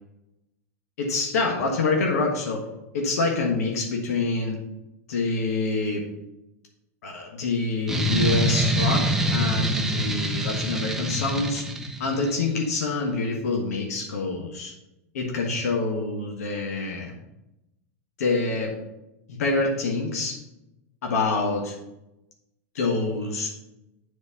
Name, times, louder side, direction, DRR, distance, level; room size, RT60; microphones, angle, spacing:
voice 1, 1.0-2.6 2.9-4.6 5.1-6.0 7.0-11.6 12.0-14.7 15.1-17.1 18.2-18.7 19.3-20.4 21.0-21.7 22.7-23.5, left 3 dB, 80° left, 0 dB, 1.4 m, -26 dB
sound 1, 7.9-12.3, right 1 dB, 5° right, 0.9 m, -25 dB
7.5 x 4.5 x 5.4 m, 0.94 s
hypercardioid pair, 110°, 8 cm